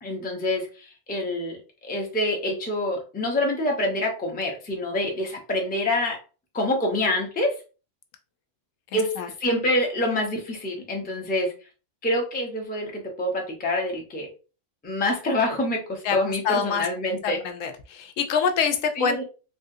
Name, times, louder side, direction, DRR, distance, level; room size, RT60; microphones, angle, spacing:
voice 1, 0.0-6.2 6.5-7.5 8.9-11.5 12.0-14.3 14.8-17.4 19.0-19.2, left 1 dB, 10° left, 1 dB, 0.4 m, -26 dB
voice 2, 8.9-9.3 16.0-16.2 16.4-16.8 17.2-19.2, left 6 dB, 80° left, 6 dB, 1.0 m, -25 dB
3.4 x 2.4 x 2.6 m, 0.34 s
omnidirectional pair, 1.3 m